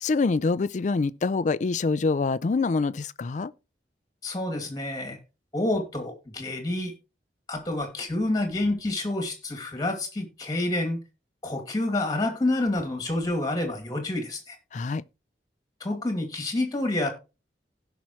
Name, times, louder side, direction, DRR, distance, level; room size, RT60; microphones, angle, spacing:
voice 1, 0.0-3.5 14.7-15.0, left 4 dB, 45° left, 0.4 m, -25 dB
voice 2, 4.2-5.2 5.5-6.9 7.5-11.0 11.4-14.6 15.8-17.1, left 2 dB, 20° left, 2.4 m, -28 dB
16.5 x 5.8 x 3.1 m
head